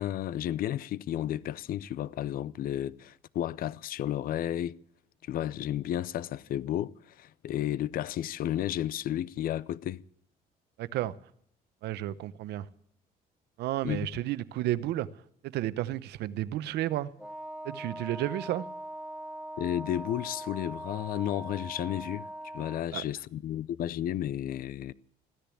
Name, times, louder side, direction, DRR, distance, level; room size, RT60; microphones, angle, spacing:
voice 1, 0.0-4.8 5.3-10.0 13.8-14.1 19.6-22.3 22.5-24.9, left 12 dB, 60° left, 0.6 m, -32 dB
voice 2, 10.8-11.1 11.8-12.7 13.6-15.1 15.4-17.1 17.6-18.7 22.9-23.0, right 14 dB, 75° right, 0.8 m, -32 dB
Wind instrument woodwind instrument, 17.2-22.9, right 1 dB, 5° right, 0.8 m, -41 dB
15.5 x 10.5 x 8.5 m
cardioid pair, 110°, 17 cm